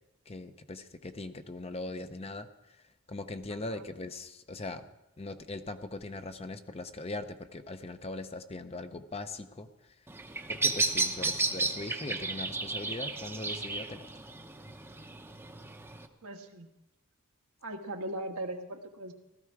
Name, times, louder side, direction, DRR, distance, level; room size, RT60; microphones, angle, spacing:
voice 1, 0.3-2.8 3.1-4.9 5.2-9.9 10.5-14.1, left 2 dB, 25° left, 9 dB, 0.7 m, -40 dB
voice 2, 3.5-3.8 11.0-11.4 16.2-16.7 17.6-19.1, right 1 dB, 75° right, 3 dB, 1.5 m, -40 dB
Bird vocalization bird call bird song, 10.1-16.1, right 3 dB, 10° right, 0.8 m, -33 dB
16.0 x 14.0 x 4.7 m, 0.94 s
head